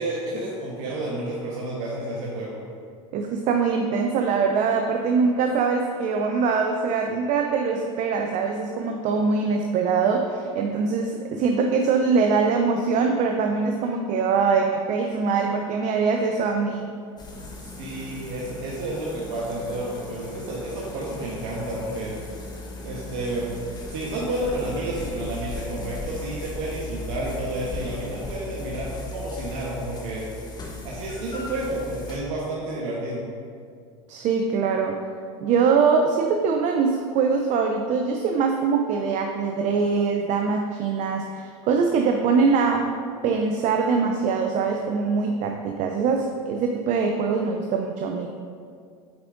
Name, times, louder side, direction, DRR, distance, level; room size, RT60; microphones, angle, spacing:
voice 1, 0.0-2.6 17.8-22.1 22.8-23.5 23.9-30.2 30.8-33.2, right 1 dB, 70° right, -5 dB, 1.1 m, -30 dB
voice 2, 3.1-17.0 34.1-35.0 35.4-42.9 43.2-48.3, right 5 dB, 45° right, 3 dB, 0.5 m, -23 dB
sound 1, 17.2-32.2, left 2 dB, 25° left, 1.1 m, -37 dB
8.0 x 4.9 x 2.6 m, 2.2 s
hypercardioid pair, 95°, 17 cm